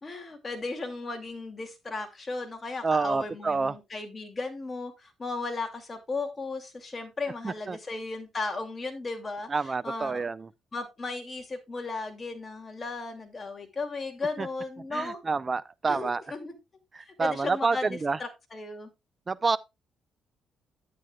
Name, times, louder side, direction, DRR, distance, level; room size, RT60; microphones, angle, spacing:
voice 1, 0.0-10.3 10.7-15.2 15.9-16.6 17.1-18.9, left 3 dB, 30° left, 2.5 m, -35 dB
voice 2, 2.8-3.8 7.4-7.8 9.5-10.5 14.4-14.5 14.9-16.2 16.9-18.2 19.3-19.6, right 4 dB, 30° right, 0.6 m, -28 dB
11.0 x 9.4 x 2.3 m
cardioid pair, 90°, 0 cm